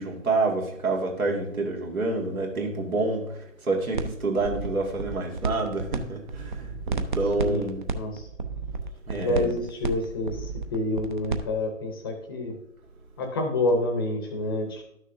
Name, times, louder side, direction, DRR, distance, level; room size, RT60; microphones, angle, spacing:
voice 1, 0.0-7.9 9.1-9.5, right 3 dB, 80° right, 0 dB, 2.3 m, -28 dB
sound 1, 3.9-4.1 4.4-6.0 6.2-11.4, right 4 dB, 35° right, 0.6 m, -31 dB
voice 2, 7.4-8.3 9.1-12.5 13.2-14.8, left 2 dB, 15° left, 3 dB, 0.7 m, -28 dB
12.0 x 6.3 x 2.6 m, 0.78 s
figure-of-eight pair, 145°, 42 cm